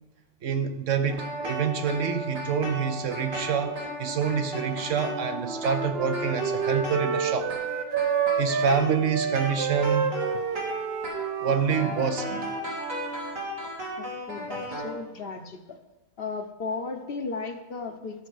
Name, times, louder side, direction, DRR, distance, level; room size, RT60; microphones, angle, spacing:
voice 1, 0.4-3.7 4.0-7.5 8.4-10.1 11.4-12.5, right 6 dB, 70° right, 1.2 m, -27 dB
sound 1, 1.1-14.9, equal, 90° right, 2.9 m, -35 dB
Wind instrument woodwind instrument, 4.9-8.8 9.1-13.4, right 7 dB, 55° right, 0.9 m, -30 dB
voice 2, 14.0-15.8 16.2-18.3, left 4 dB, 55° left, 0.9 m, -35 dB
12.5 x 5.0 x 6.4 m
omnidirectional pair, 1.3 m